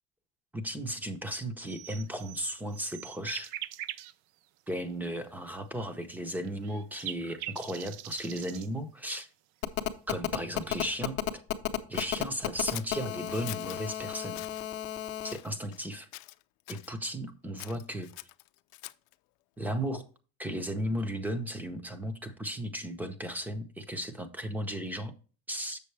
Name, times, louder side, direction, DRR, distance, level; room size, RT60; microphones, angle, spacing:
voice 1, 0.5-3.5 4.7-9.3 10.1-11.4 11.9-14.5 15.2-16.1 16.7-18.1 19.6-20.0 20.4-25.1 25.5-25.8, equal, 5° right, 0.7 m, -35 dB
sound 1, 1.7-4.1 4.7-4.8 6.3-8.7, right 13 dB, 80° right, 0.5 m, -42 dB
Telephone, 9.6-15.3, left 13 dB, 40° left, 0.7 m, -32 dB
Scissors, 11.9-13.8 14.3-14.6 15.2-15.9 16.1-16.9 17.6-19.1, left 20 dB, 85° left, 0.5 m, -45 dB
7.6 x 6.7 x 3.2 m
cardioid pair, 165°, 30 cm